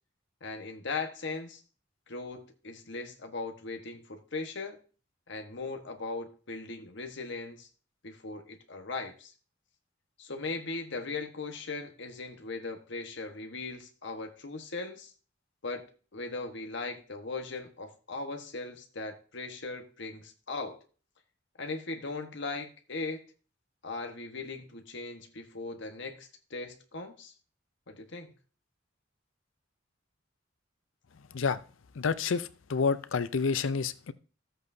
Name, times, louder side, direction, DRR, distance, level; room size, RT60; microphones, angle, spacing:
voice 1, 0.4-1.6 2.1-4.8 5.3-7.7 8.0-9.3 10.2-15.1 15.6-15.8 16.1-20.8 21.6-23.2 23.8-27.3 27.9-28.3, left 3 dB, 65° left, 5 dB, 1.3 m, -39 dB
voice 2, 32.0-34.1, left 5 dB, 85° left, 14 dB, 0.5 m, -29 dB
13.5 x 8.0 x 2.7 m, 0.40 s
head